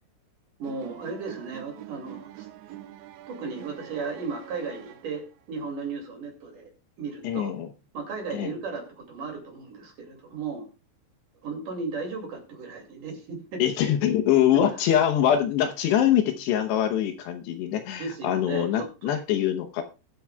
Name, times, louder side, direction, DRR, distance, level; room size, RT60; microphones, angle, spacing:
voice 1, 0.6-2.5 3.3-6.7 7.0-7.6 7.9-10.7 11.4-13.6 14.5-14.7 17.9-19.2, right 4 dB, 50° right, 2 dB, 3.4 m, -35 dB
sound 1, 0.6-5.5, right 12 dB, 85° right, 3.0 m, -45 dB
voice 2, 7.2-7.7 8.3-8.5 13.6-19.8, left 10 dB, 75° left, 6 dB, 2.9 m, -24 dB
21.0 x 7.8 x 2.3 m, 0.30 s
omnidirectional pair, 5.1 m